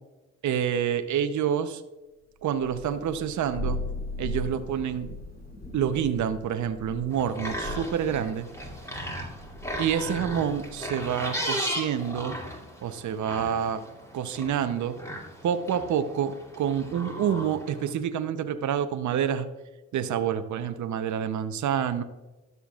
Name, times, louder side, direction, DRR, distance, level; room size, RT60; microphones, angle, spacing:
voice 1, 0.4-1.8 2.4-3.8 4.2-5.1 5.7-8.5 9.8-12.4 12.8-13.8 14.1-14.9 15.4-19.5 19.9-22.0, right 8 dB, 60° right, 9 dB, 0.8 m, -28 dB
Thunder, 2.6-11.0, left 1 dB, 25° left, 2.6 m, -38 dB
sound 1, 7.1-17.9, equal, 10° left, 2.3 m, -36 dB
12.5 x 6.8 x 2.4 m, 1.1 s
supercardioid pair, 70°, 34 cm